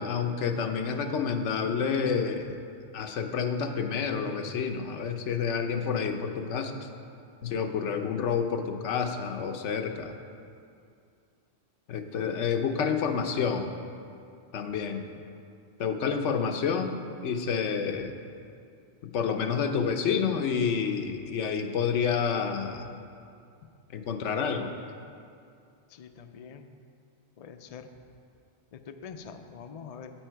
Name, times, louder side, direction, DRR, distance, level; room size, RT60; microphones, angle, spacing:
voice 1, 0.0-2.6 2.9-6.9 7.4-10.2 11.9-13.7 14.5-15.1 15.8-18.1 19.0-22.9 23.9-24.7, left 6 dB, 85° left, 6 dB, 1.0 m, -29 dB
voice 2, 25.9-26.7 27.4-27.8 28.9-30.1, left 6 dB, 55° left, 7 dB, 0.4 m, -44 dB
9.0 x 8.5 x 4.5 m, 2.4 s
omnidirectional pair, 1.2 m